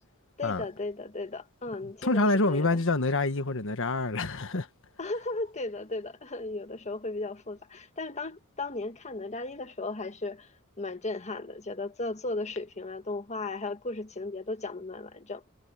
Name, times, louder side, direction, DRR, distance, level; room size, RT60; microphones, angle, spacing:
voice 1, 0.4-2.8 5.0-10.5 10.8-15.4, left 2 dB, 30° left, 1.5 m, -35 dB
voice 2, 2.0-4.7, left 2 dB, 60° left, 1.4 m, -26 dB
head